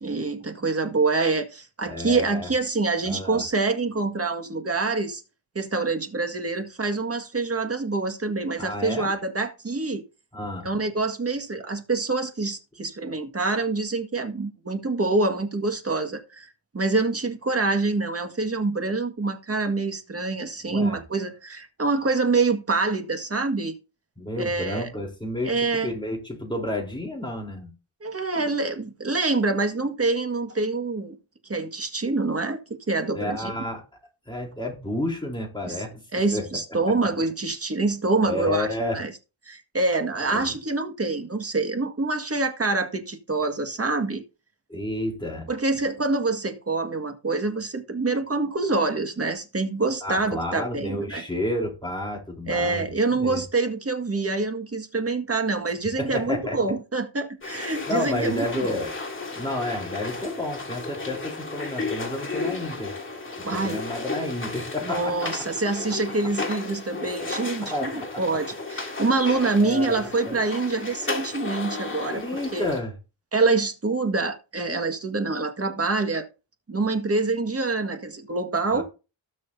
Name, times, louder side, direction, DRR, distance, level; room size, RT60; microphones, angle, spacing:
voice 1, 0.0-5.2 5.6-10.0 10.6-23.7 24.4-24.9 25.4-26.0 28.0-31.2 31.5-32.6 32.9-33.5 35.6-35.8 36.1-38.7 38.9-39.1 39.5-44.2 45.5-51.2 52.5-58.7 63.4-63.8 64.8-72.2 72.5-72.7 73.3-76.3 76.7-78.8, right 3 dB, 30° right, 1.9 m, -26 dB
voice 2, 1.8-2.5 3.0-3.4 8.6-9.1 10.3-10.7 20.7-21.0 24.2-27.7 33.1-33.8 34.3-36.0 36.3-36.5 38.2-39.0 40.3-40.5 44.7-45.5 50.0-52.9 53.1-53.4 56.0-56.6 57.9-58.9 59.3-62.9 63.5-65.3 67.6-68.2 69.6-70.4 72.1-73.0 78.7-78.8, left 1 dB, 10° left, 3.8 m, -30 dB
sound 1, 57.4-72.8, left 3 dB, 25° left, 2.8 m, -34 dB
19.0 x 6.4 x 2.8 m
wide cardioid pair, 110°, 46 cm